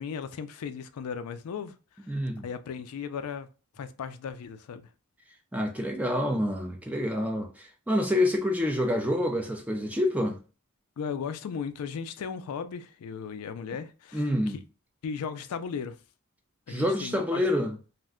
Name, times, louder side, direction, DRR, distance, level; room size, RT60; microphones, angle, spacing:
voice 1, 0.0-1.7 2.4-3.5 3.8-4.9 11.0-14.6 15.0-16.0 16.7-17.4, left 6 dB, 80° left, 0.4 m, -36 dB
voice 2, 2.1-2.5 5.5-10.4 14.1-14.6 16.7-17.8, left 1 dB, 5° right, 0.4 m, -27 dB
2.5 x 2.1 x 3.6 m
head